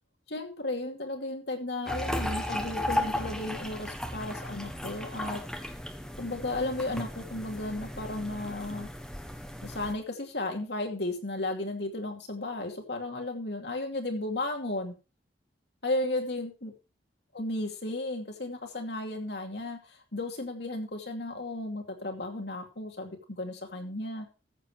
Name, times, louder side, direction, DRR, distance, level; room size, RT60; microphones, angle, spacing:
voice 1, 0.3-5.4 6.2-8.9 9.6-14.9 15.8-16.7 17.3-24.3, left 2 dB, 65° left, 3 dB, 2.6 m, -34 dB
sound 1, 1.9-9.9, left 1 dB, 5° left, 1.3 m, -35 dB
14.0 x 7.9 x 4.6 m, 0.31 s
head